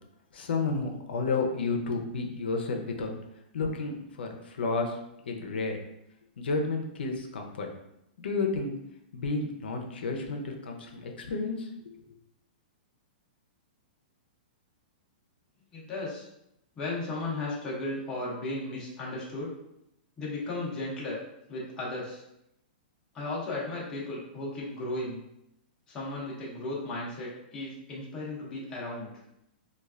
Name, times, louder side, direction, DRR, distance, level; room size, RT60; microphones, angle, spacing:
voice 1, 0.3-3.1 3.5-5.0 5.3-5.8 6.4-7.7 8.2-8.7 9.1-11.7, left 3 dB, 85° left, 3 dB, 0.6 m, -31 dB
voice 2, 15.7-16.3 16.8-19.5 20.2-21.2 21.5-22.2 23.1-25.2 25.9-29.2, left 2 dB, 15° left, -5 dB, 0.6 m, -35 dB
3.2 x 2.3 x 2.4 m, 0.81 s
hypercardioid pair, 170°, 5 cm